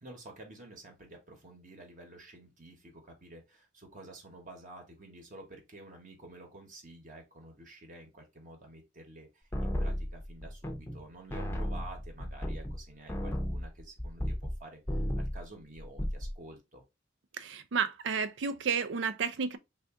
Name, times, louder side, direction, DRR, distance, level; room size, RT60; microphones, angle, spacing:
voice 1, 0.0-16.8, right 2 dB, 45° right, 1.0 m, -50 dB
sound 1, 9.5-11.0 11.3-14.6 14.9-15.4 15.8-16.3, equal, 15° left, 0.6 m, -34 dB
voice 2, 17.3-19.6, right 6 dB, 75° right, 0.5 m, -31 dB
3.4 x 2.5 x 3.6 m
head